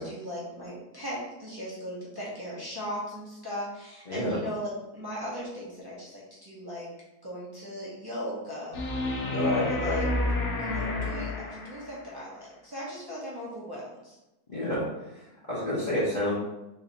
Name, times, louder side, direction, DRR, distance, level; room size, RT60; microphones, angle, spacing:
voice 1, 0.0-6.9 7.2-8.8 9.3-10.1 10.6-14.2, equal, 20° right, -8 dB, 0.7 m, -37 dB
voice 2, 4.1-4.4 9.2-10.0 14.5-14.9 15.1-16.3, left 1 dB, 35° left, -10 dB, 1.0 m, -30 dB
sound 1, 8.7-12.1 14.7-14.8, left 2 dB, 65° left, 0.8 m, -30 dB
3.2 x 2.7 x 4.0 m, 0.98 s
omnidirectional pair, 1.6 m